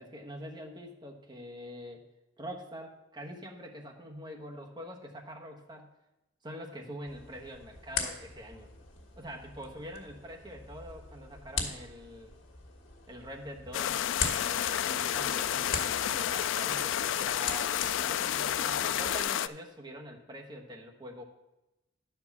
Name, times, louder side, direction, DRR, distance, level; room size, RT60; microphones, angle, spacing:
voice 1, 0.0-2.0 2.4-5.9 6.4-8.7 9.2-12.3 13.1-14.0 14.4-21.2, equal, 25° right, 1 dB, 1.1 m, -44 dB
sound 1, 7.1-19.2, left 5 dB, 90° left, 1.5 m, -41 dB
sound 2, 13.7-19.5, left 10 dB, 75° left, 0.3 m, -30 dB
10.5 x 4.5 x 7.0 m, 0.94 s
head